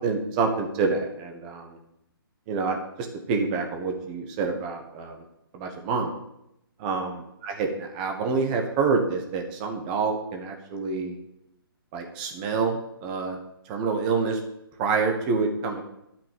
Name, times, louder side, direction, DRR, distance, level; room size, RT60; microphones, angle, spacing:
voice 1, 0.0-1.8 2.5-2.8 3.3-5.1 5.5-6.1 6.8-7.1 7.4-11.1 11.9-13.4 13.7-14.4 14.8-15.8, right 4 dB, 20° right, 3 dB, 1.4 m, -27 dB
12.5 x 5.9 x 7.7 m, 0.83 s
hypercardioid pair, 165°, 13 cm